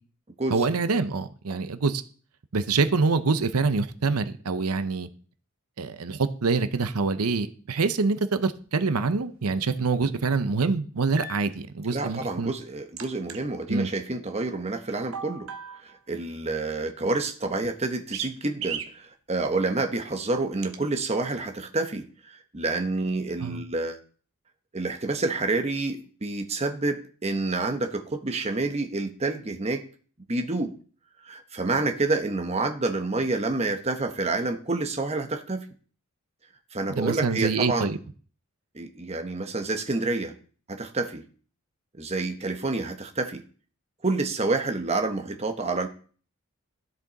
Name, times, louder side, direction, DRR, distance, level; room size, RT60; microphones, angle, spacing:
voice 1, 0.5-2.0 2.5-5.1 5.8-12.5 13.7-13.9 23.4-23.6 36.9-38.0, right 4 dB, 90° right, 11 dB, 0.7 m, -25 dB
sound 1, 11.2-11.4 13.0-13.4 15.1-15.9 18.1-18.3 18.6-18.9 20.6-20.8, right 6 dB, 70° right, 1.0 m, -35 dB
voice 2, 11.9-15.5 15.8-24.0 24.7-29.8 30.3-30.7 31.2-35.7 36.7-37.9 38.7-40.3 40.7-41.2 42.0-43.4 44.0-45.9, right 3 dB, 30° right, 5 dB, 1.0 m, -28 dB
13.0 x 6.0 x 4.1 m, 0.42 s
head